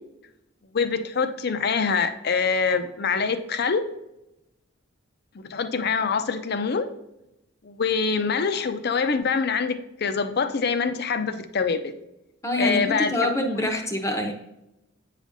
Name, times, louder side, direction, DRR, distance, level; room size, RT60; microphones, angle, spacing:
voice 1, 0.7-3.8 5.5-6.9 7.6-12.0 12.6-13.3, left 5 dB, 50° left, 10 dB, 0.5 m, -25 dB
voice 2, 12.4-14.3, left 1 dB, 15° left, 3 dB, 0.7 m, -25 dB
8.2 x 5.0 x 2.6 m, 0.89 s
head